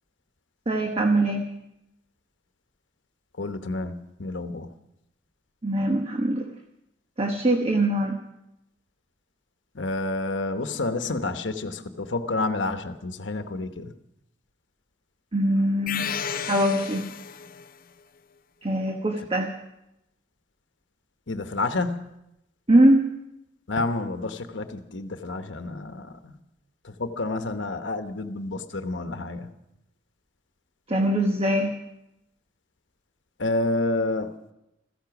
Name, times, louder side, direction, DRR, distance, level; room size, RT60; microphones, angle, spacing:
voice 1, 0.7-1.4 5.6-6.5 7.2-8.2 15.3-16.0 16.4-17.1 18.6-19.5 22.7-23.1 30.9-31.7, right 1 dB, 30° right, 3 dB, 1.1 m, -22 dB
voice 2, 3.4-4.7 9.7-13.9 21.3-22.1 23.7-26.4 26.8-29.5 33.4-34.3, left 2 dB, 70° left, 8 dB, 1.1 m, -29 dB
sound 1, 15.9-17.8, left 7 dB, 50° left, 0.7 m, -32 dB
16.0 x 15.0 x 6.0 m, 0.86 s
head